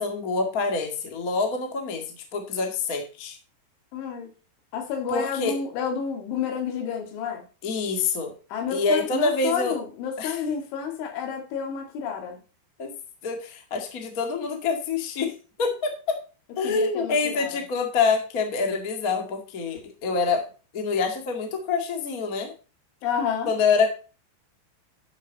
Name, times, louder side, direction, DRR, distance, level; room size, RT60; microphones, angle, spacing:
voice 1, 0.0-2.0 2.3-3.4 5.1-5.5 7.6-8.3 8.7-9.7 10.2-10.4 12.8-12.9 13.2-15.3 15.6-16.1 16.6-20.5 20.7-22.5 23.4-23.9, left 4 dB, 55° left, 0.9 m, -26 dB
voice 2, 3.9-4.3 4.7-7.4 8.5-12.4 16.6-17.6 23.0-23.5, left 7 dB, 85° left, 4.4 m, -30 dB
11.5 x 7.5 x 4.0 m
omnidirectional pair, 5.3 m